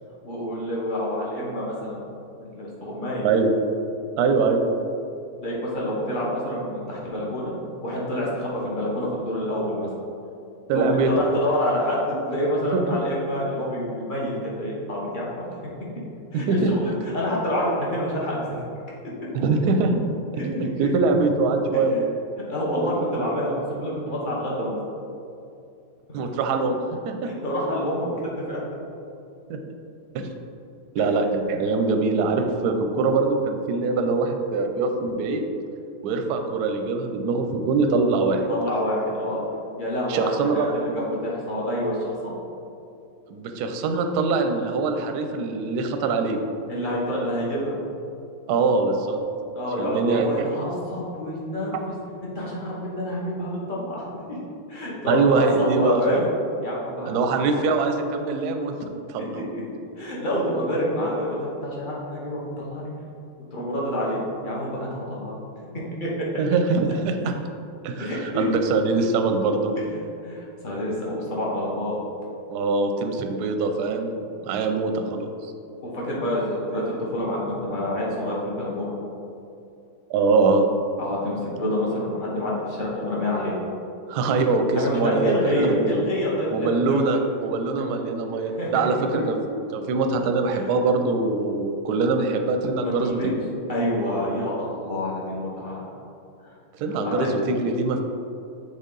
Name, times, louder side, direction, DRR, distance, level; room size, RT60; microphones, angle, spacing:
voice 1, 0.2-2.0 2.4-3.3 5.4-7.5 7.8-9.9 10.7-15.6 16.3-18.6 20.4-20.5 20.8-20.9 21.7-21.8 22.5-24.8 26.1-26.2 27.3-28.6 31.0-31.1 38.5-39.4 39.8-42.4 46.7-47.8 49.5-51.9 52.3-54.4 54.7-56.2 56.6-57.6 59.2-59.6 60.0-62.9 63.5-64.2 64.4-65.3 65.7-66.3 68.0-68.4 70.2-72.0 75.8-79.0 81.0-83.5 84.7-87.0 88.6-88.8 89.1-89.2 90.5-90.6 92.8-93.3 93.7-95.9 96.9-97.3, equal, 35° left, -5 dB, 1.1 m, -27 dB
voice 2, 3.2-3.5 4.2-4.6 10.7-11.1 12.7-13.0 16.3-16.7 19.3-19.9 20.4-22.1 26.1-26.8 27.1-27.3 29.5-29.6 30.1-30.3 30.9-35.4 36.0-38.4 40.1-40.7 43.3-46.4 48.5-49.2 49.8-50.4 55.1-56.2 57.1-59.4 66.4-67.3 67.8-69.7 72.5-74.1 74.4-75.5 80.1-80.6 84.1-86.0 86.5-89.4 89.7-93.3 96.8-98.0, right 3 dB, 70° right, 5 dB, 1.0 m, -23 dB
7.2 x 3.6 x 3.8 m, 2.6 s
omnidirectional pair, 1.9 m